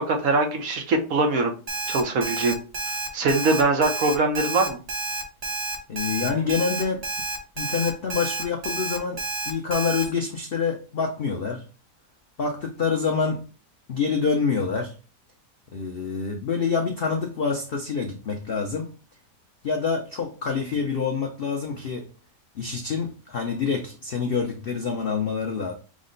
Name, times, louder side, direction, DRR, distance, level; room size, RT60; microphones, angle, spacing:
voice 1, 0.0-1.5 1.9-2.5 3.1-4.8, right 3 dB, 60° right, 1.1 m, -22 dB
Alarm, 1.7-10.0, right 2 dB, 35° right, 0.6 m, -30 dB
voice 2, 5.9-7.0 7.6-11.6 12.4-13.4 13.9-14.9 15.7-18.9 19.6-22.1 22.5-25.7, left 5 dB, 70° left, 0.5 m, -26 dB
6.1 x 2.1 x 3.8 m
omnidirectional pair, 1.8 m